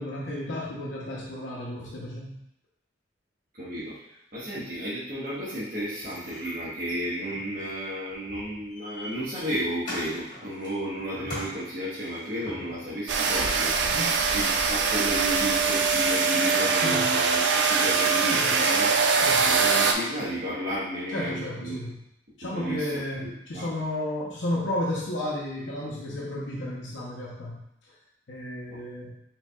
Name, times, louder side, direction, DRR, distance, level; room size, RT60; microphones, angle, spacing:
voice 1, 0.0-2.4 13.8-14.1 16.7-17.0 18.3-18.5 19.1-19.5 21.1-21.9 22.4-27.6 28.3-29.2, left 1 dB, 80° left, -4 dB, 0.8 m, -33 dB
voice 2, 3.6-4.0 4.3-14.0 14.3-18.9 19.4-21.8 22.4-23.7 28.7-28.8, equal, 50° right, -10 dB, 1.2 m, -33 dB
sound 1, 6.0-13.1 15.4-15.5 15.9-16.0 16.1-17.2 17.8-18.6, equal, 45° left, 1.4 m, -43 dB
sound 2, 13.1-19.9, right 5 dB, 70° right, 0.4 m, -23 dB
4.5 x 3.5 x 2.3 m, 0.79 s
head